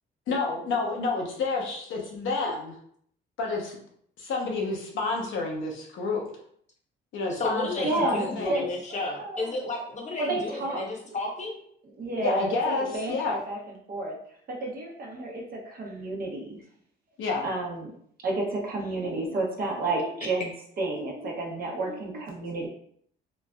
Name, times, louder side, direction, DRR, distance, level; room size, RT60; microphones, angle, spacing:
voice 1, 0.3-2.8 3.4-3.8 4.2-6.2 7.1-8.7 12.2-13.4 17.2-17.4, left 3 dB, 80° left, -1 dB, 0.7 m, -29 dB
voice 2, 7.3-11.5, left 2 dB, 35° left, 0 dB, 0.8 m, -32 dB
voice 3, 7.8-9.5 10.2-10.8 12.0-14.2 14.5-16.6 17.4-17.9 18.2-20.5 20.8-22.7, right 2 dB, 50° right, -1 dB, 0.8 m, -31 dB
3.0 x 2.5 x 2.2 m, 0.65 s
cardioid pair, 90°, 20 cm